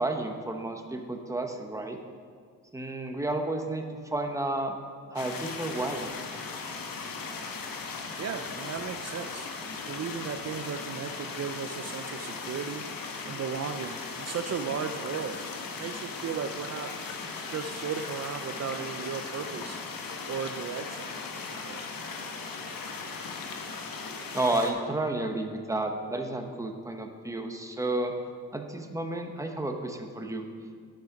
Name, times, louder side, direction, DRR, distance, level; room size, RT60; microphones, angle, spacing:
voice 1, 0.0-2.0 2.7-4.8 5.1-6.1 24.3-28.1 28.5-30.4, right 2 dB, 10° right, 4 dB, 0.9 m, -31 dB
sound 1, 5.2-24.7, left 4 dB, 80° left, 1.1 m, -38 dB
voice 2, 8.2-9.6 9.9-12.8 13.3-15.4 15.8-16.9 17.5-19.8 20.3-21.9, right 6 dB, 50° right, 7 dB, 0.5 m, -35 dB
10.0 x 6.3 x 5.8 m, 2.1 s
cardioid pair, 105°, 34 cm